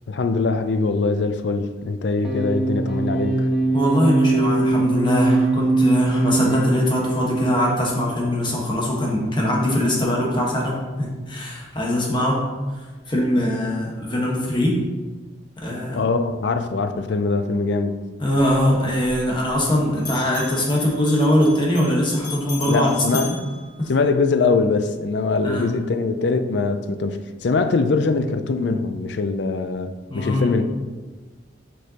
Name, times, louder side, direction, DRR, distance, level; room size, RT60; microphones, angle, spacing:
voice 1, 0.1-3.5 16.0-18.0 22.7-23.3 23.9-29.9 30.1-30.6, left 4 dB, 60° left, 9 dB, 0.4 m, -22 dB
sound 1, 2.2-7.9, right 2 dB, 5° right, 1.1 m, -21 dB
voice 2, 3.7-12.4 13.1-14.8 15.6-16.0 18.2-22.9 23.8-23.9 25.4-25.7 30.1-30.6, left 1 dB, 25° left, -3 dB, 1.2 m, -22 dB
Bell, 19.9-24.4, left 4 dB, 45° left, 1.8 m, -38 dB
6.4 x 5.3 x 2.9 m, 1.3 s
head